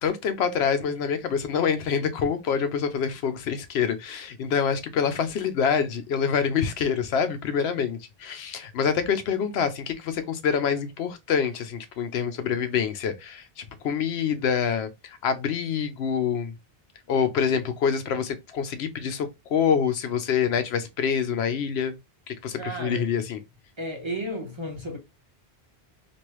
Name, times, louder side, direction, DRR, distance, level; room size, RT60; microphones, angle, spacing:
voice 1, 0.0-16.5 17.1-22.0 22.3-23.4, left 7 dB, 80° left, 0.9 m, -26 dB
voice 2, 22.6-23.0 23.8-25.0, equal, 30° right, 0.8 m, -33 dB
3.1 x 2.5 x 3.0 m
omnidirectional pair, 1.1 m